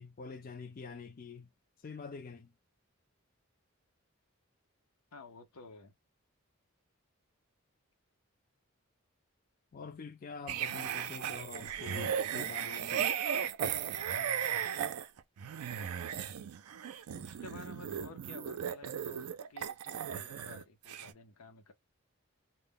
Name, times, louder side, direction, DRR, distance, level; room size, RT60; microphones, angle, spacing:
voice 1, 0.0-1.5 1.8-2.5 9.7-13.2, left 5 dB, 40° left, 0.4 m, -46 dB
voice 2, 5.1-5.9 17.1-21.7, left 3 dB, 85° left, 0.7 m, -52 dB
sound 1, 10.5-20.6 20.9-21.1, right 8 dB, 85° right, 0.4 m, -36 dB
2.1 x 2.0 x 3.4 m
head